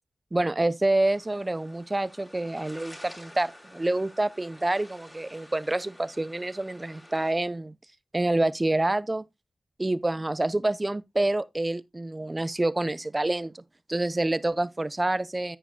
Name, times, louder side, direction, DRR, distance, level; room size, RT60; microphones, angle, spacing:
voice 1, 0.3-7.7 8.1-9.2 9.8-13.6 13.9-15.6, right 2 dB, 25° right, 0.6 m, -27 dB
sound 1, 1.0-7.3, left 1 dB, 10° left, 4.2 m, -50 dB
10.0 x 8.8 x 2.3 m
cardioid pair, 60°, 0 cm